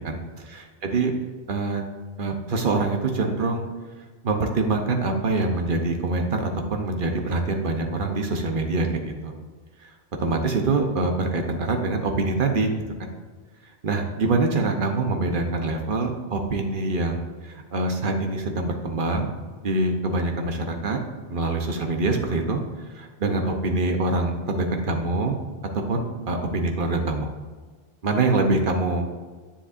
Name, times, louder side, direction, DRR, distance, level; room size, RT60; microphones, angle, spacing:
voice 1, 0.5-1.1 1.5-1.8 2.2-3.7 4.2-9.3 9.8-9.9 10.2-12.7 13.0-13.1 13.8-19.4 19.6-21.0 21.3-22.6 22.9-25.4 25.9-27.3 28.0-29.1, right 3 dB, 50° right, 4 dB, 1.0 m, -25 dB
9.8 x 7.1 x 2.6 m, 1.4 s
omnidirectional pair, 1.2 m